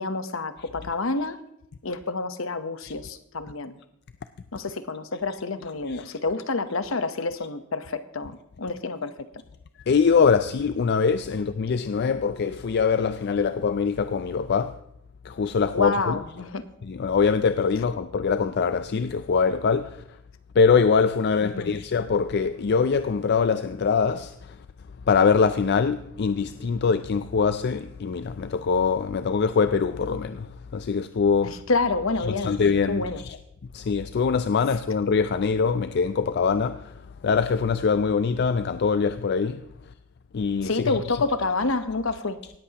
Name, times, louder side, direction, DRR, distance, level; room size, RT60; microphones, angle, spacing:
voice 1, 0.0-1.4 1.8-3.8 4.5-9.3 15.7-16.6 21.4-21.8 31.4-32.6 32.9-33.2 40.6-42.4, left 3 dB, 70° left, 0.9 m, -28 dB
voice 2, 9.9-14.7 15.3-15.9 16.8-19.9 20.6-24.3 25.1-30.5 30.7-31.5 32.4-33.0 33.7-36.8 37.2-39.6 40.3-40.9, left 5 dB, 50° left, 0.4 m, -23 dB
18.0 x 14.0 x 2.9 m
head